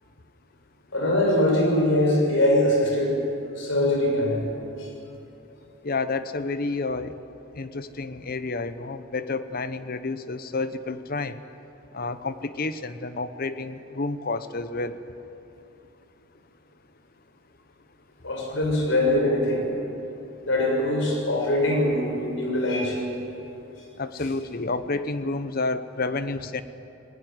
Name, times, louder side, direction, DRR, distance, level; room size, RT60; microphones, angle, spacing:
voice 1, 0.9-3.2 3.6-4.5 4.8-4.9 18.2-19.7 20.5-23.1, left 1 dB, 75° left, 0 dB, 6.5 m, -22 dB
voice 2, 5.8-7.2 7.6-11.4 11.9-15.0 24.0-26.6, left 3 dB, 50° left, 12 dB, 0.9 m, -30 dB
19.5 x 18.0 x 9.4 m, 3.0 s
head